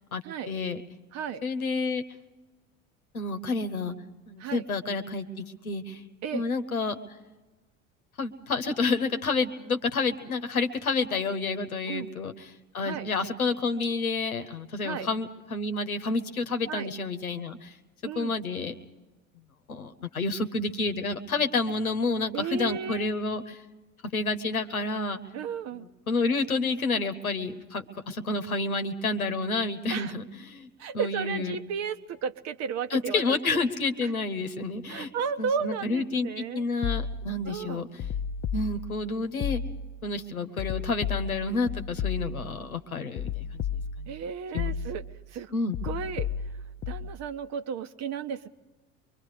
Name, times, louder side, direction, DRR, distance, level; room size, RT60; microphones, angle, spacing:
voice 1, 0.1-0.8 1.4-2.0 3.1-3.9 4.3-6.0 6.3-7.0 8.2-12.5 12.7-17.7 18.1-18.7 19.7-23.5 24.1-25.2 25.7-30.7 30.9-31.5 32.9-35.1 35.4-37.9 38.5-39.6 40.0-43.6 44.0-44.1 44.5-44.7 45.5-45.8, left 3 dB, 85° left, 9 dB, 1.2 m, -29 dB
voice 2, 1.1-1.4 4.4-4.6 6.2-6.4 11.9-12.1 12.8-13.1 14.8-15.1 16.7-16.9 18.0-18.3 22.3-23.1 25.3-25.9 29.9-30.1 30.8-33.6 34.0-34.1 34.9-36.6 37.5-37.8 44.1-45.5 45.8-46.3 46.9-48.5, right 6 dB, 40° right, 12 dB, 1.0 m, -34 dB
sound 1, 36.8-37.5 38.0-39.1 39.4-40.0 40.6-42.6 43.2-44.2 44.6-45.2 45.7-47.1, left 7 dB, 30° left, 0.8 m, -33 dB
24.5 x 23.0 x 4.9 m, 1.1 s
figure-of-eight pair, 70°, 42 cm